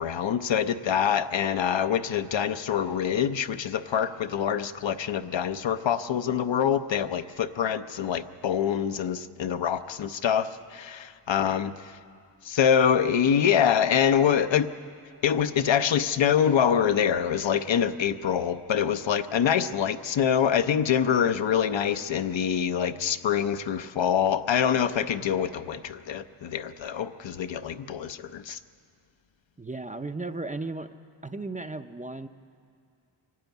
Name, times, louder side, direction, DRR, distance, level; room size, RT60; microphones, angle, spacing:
voice 1, 0.0-11.9 12.4-14.7 15.2-28.6, left 8 dB, 70° left, 10 dB, 0.8 m, -25 dB
voice 2, 29.6-30.9 31.2-32.3, right 3 dB, 15° right, 8 dB, 0.5 m, -35 dB
24.0 x 12.5 x 9.2 m, 2.4 s
wide cardioid pair, 125°, 47 cm